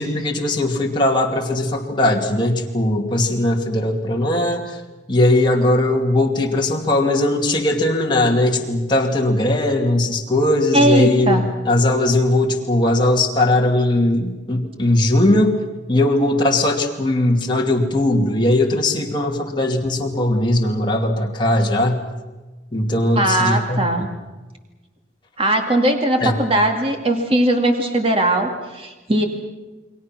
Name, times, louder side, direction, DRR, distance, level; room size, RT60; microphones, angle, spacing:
voice 1, 0.0-4.7 5.1-15.6 15.9-22.0 22.7-24.1 26.2-26.4, left 1 dB, 25° left, -1 dB, 2.5 m, -19 dB
voice 2, 10.7-11.5 23.1-24.1 25.4-29.2, right 1 dB, 30° right, 3 dB, 2.3 m, -19 dB
29.5 x 22.5 x 6.1 m, 1.2 s
head